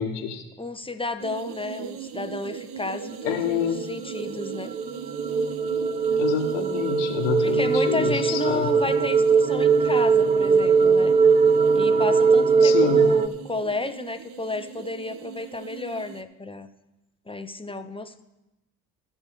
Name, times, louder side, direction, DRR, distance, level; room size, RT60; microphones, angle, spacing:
voice 1, 0.0-0.4 3.2-3.8 6.2-8.7 12.6-13.1, left 8 dB, 80° left, 5 dB, 1.4 m, -27 dB
voice 2, 0.6-4.7 7.4-11.2 11.7-16.7 17.3-18.2, left 3 dB, 10° left, 8 dB, 0.8 m, -32 dB
sound 1, 1.2-16.2, right 7 dB, 55° right, 0.9 m, -39 dB
sound 2, 3.6-13.3, right 5 dB, 15° right, 0.3 m, -20 dB
17.5 x 6.6 x 3.7 m, 0.99 s
hypercardioid pair, 55°, 46 cm